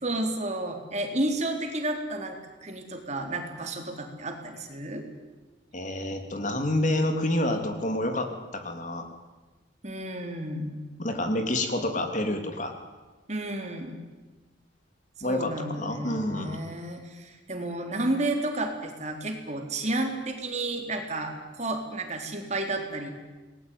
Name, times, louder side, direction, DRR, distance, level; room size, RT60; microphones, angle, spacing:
voice 1, 0.0-5.0 9.8-10.8 13.3-14.0 15.2-23.1, right 2 dB, 35° right, 4 dB, 4.0 m, -31 dB
voice 2, 5.7-9.1 11.0-12.7 15.2-16.6, left 1 dB, 40° left, 6 dB, 3.0 m, -28 dB
28.5 x 20.0 x 9.6 m, 1.2 s
head